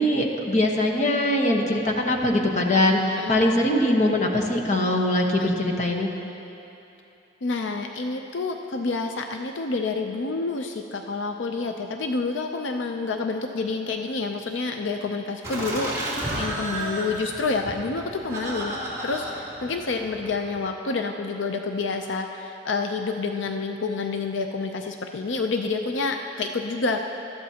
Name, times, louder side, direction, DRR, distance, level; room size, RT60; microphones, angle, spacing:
voice 1, 0.0-6.1, left 1 dB, 40° left, 1 dB, 1.1 m, -22 dB
voice 2, 7.4-16.0 16.3-18.8 19.0-27.0, left 3 dB, 80° left, 4 dB, 0.5 m, -28 dB
Laughter, 15.4-20.6, right 1 dB, 15° right, 3.0 m, -33 dB
19.5 x 13.5 x 2.8 m, 2.9 s
head